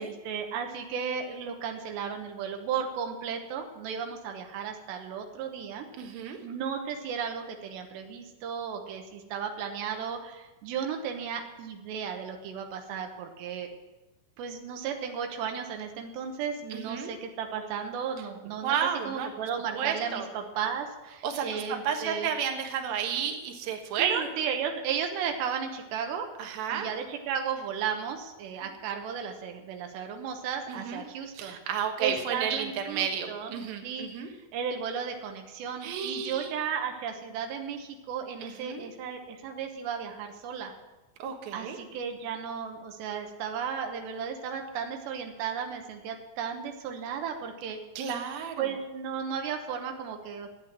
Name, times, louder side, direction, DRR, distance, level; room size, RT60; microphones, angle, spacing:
voice 1, 0.0-5.9 6.4-13.7 14.4-18.8 19.0-22.3 24.0-26.3 26.7-31.6 32.0-40.7 41.5-47.8 48.6-50.5, right 7 dB, 90° right, 4 dB, 3.3 m, -34 dB
voice 2, 6.0-6.4 16.7-17.1 18.6-19.3 19.7-20.3 21.2-24.3 26.4-26.9 30.7-31.0 31.3-34.3 35.8-36.5 38.4-38.9 41.2-41.8 48.0-48.7, right 7 dB, 65° right, 3 dB, 2.9 m, -32 dB
12.5 x 8.9 x 7.6 m, 1.1 s
omnidirectional pair, 4.9 m